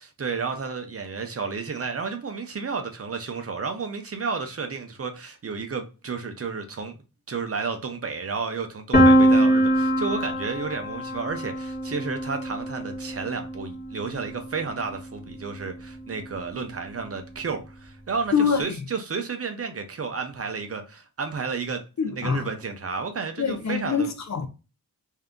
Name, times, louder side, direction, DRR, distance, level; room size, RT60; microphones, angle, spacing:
voice 1, 0.2-6.9 7.3-24.1, right 5 dB, 40° right, 0.7 m, -32 dB
Piano, 8.9-14.7, right 1 dB, 25° left, 1.9 m, -23 dB
voice 2, 18.3-18.8 22.0-22.5 23.4-24.5, left 6 dB, 50° left, 0.6 m, -25 dB
3.4 x 2.7 x 3.7 m
wide cardioid pair, 130°, 37 cm